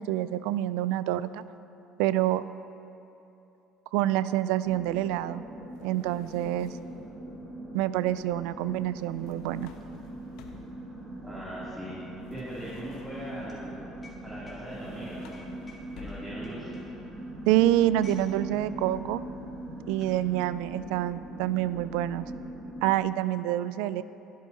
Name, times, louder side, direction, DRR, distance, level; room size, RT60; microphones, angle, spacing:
voice 1, 0.0-1.4 2.0-2.4 3.9-5.4 5.8-6.8 7.7-9.7 17.5-19.2 19.9-22.3 22.8-24.0, right 14 dB, 80° right, 16 dB, 0.3 m, -27 dB
sound 1, 4.6-23.0, right 1 dB, 50° right, 2.9 m, -41 dB
sound 2, 5.7-7.0 9.0-10.9 12.3-13.4 14.6-16.6, left 5 dB, 75° left, 1.0 m, -54 dB
sound 3, 8.1-8.2 8.4-18.3 18.6-18.9 19.6-20.2, left 3 dB, 30° left, 2.3 m, -58 dB
voice 2, 11.2-11.9 12.3-13.7 14.2-15.3 15.9-16.7, equal, 10° right, -10 dB, 3.0 m, -40 dB
22.5 x 8.4 x 2.9 m, 2.8 s
supercardioid pair, 75°, 0 cm